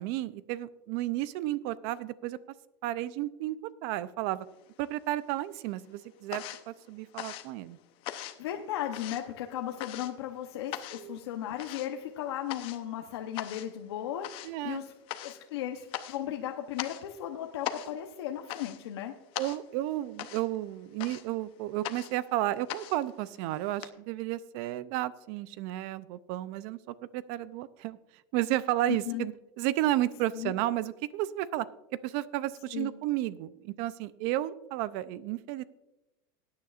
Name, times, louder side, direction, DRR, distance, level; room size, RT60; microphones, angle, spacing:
voice 1, 0.0-2.4 2.8-3.6 3.8-4.5 4.8-7.8 10.9-11.2 14.4-14.8 19.4-28.0 28.3-29.3 29.6-31.7 32.0-35.6, right 15 dB, 50° right, 17 dB, 0.5 m, -32 dB
sound 1, 4.5-5.3 5.6-23.9, left 13 dB, 45° left, 0.7 m, -42 dB
voice 2, 8.4-14.9 15.2-19.1 28.9-29.3 30.3-30.5 32.7-32.9, left 11 dB, 90° left, 3 dB, 0.9 m, -36 dB
19.5 x 9.5 x 2.5 m, 0.96 s
supercardioid pair, 155°, 13 cm